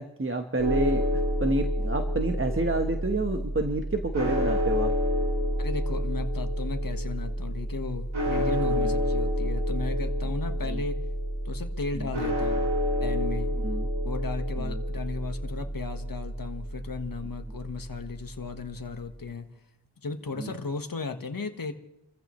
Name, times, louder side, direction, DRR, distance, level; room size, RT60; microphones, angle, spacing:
voice 1, 0.0-4.9 8.7-8.9 10.7-10.8 11.9-12.1 13.5-13.9 14.6-14.8 20.4-20.5, right 2 dB, 30° right, 4 dB, 1.2 m, -29 dB
sound 1, 0.6-18.5, equal, 90° right, 5.7 m, -29 dB
voice 2, 5.6-11.0 11.4-12.7 13.0-13.5 14.0-19.5 20.0-21.7, left 4 dB, 50° left, 6 dB, 1.5 m, -35 dB
29.0 x 15.0 x 3.2 m, 0.83 s
wide cardioid pair, 70°, 44 cm